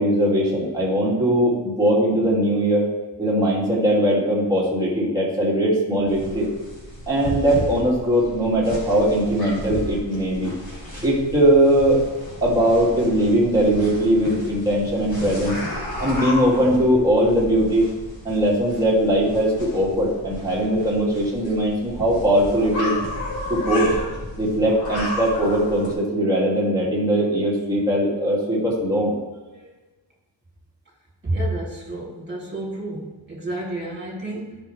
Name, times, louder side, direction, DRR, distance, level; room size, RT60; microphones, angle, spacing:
voice 1, 0.0-2.9 3.2-6.5 7.1-10.5 11.0-12.0 12.4-15.6 16.0-17.9 18.2-22.9 23.5-23.9 24.4-29.1, right 1 dB, 10° right, -7 dB, 2.6 m, -20 dB
sound 1, 6.1-25.9, left 1 dB, 55° left, 3.3 m, -33 dB
voice 2, 31.2-34.6, right 1 dB, 25° right, -4 dB, 3.0 m, -30 dB
12.5 x 5.8 x 3.4 m, 1.2 s
wide cardioid pair, 140°, 45 cm